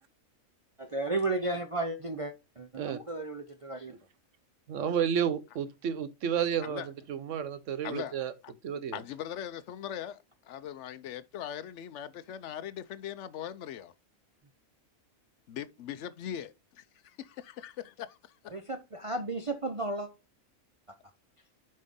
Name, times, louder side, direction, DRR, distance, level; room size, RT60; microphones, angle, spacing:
voice 1, 0.8-4.0 18.5-20.1, right 2 dB, 35° right, 0.5 m, -34 dB
voice 2, 4.7-8.3 8.6-9.0, right 8 dB, 65° right, 1.1 m, -31 dB
voice 3, 7.8-8.2 8.4-8.5 8.9-13.9 15.5-16.5 17.0-18.5, left 10 dB, 65° left, 0.8 m, -40 dB
7.5 x 5.4 x 3.7 m
omnidirectional pair, 1.4 m